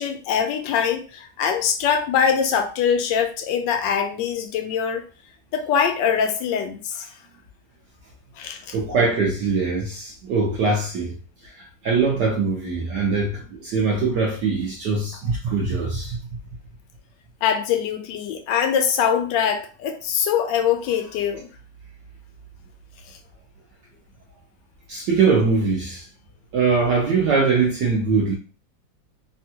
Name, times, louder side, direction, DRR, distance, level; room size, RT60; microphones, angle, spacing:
voice 1, 0.0-5.0 5.5-7.1 8.4-8.8 17.4-21.5, left 7 dB, 75° left, 1.2 m, -23 dB
voice 2, 8.7-11.2 11.4-16.2 24.9-26.0 26.5-28.3, right 4 dB, 70° right, 1.2 m, -22 dB
3.5 x 2.2 x 2.7 m
omnidirectional pair, 2.1 m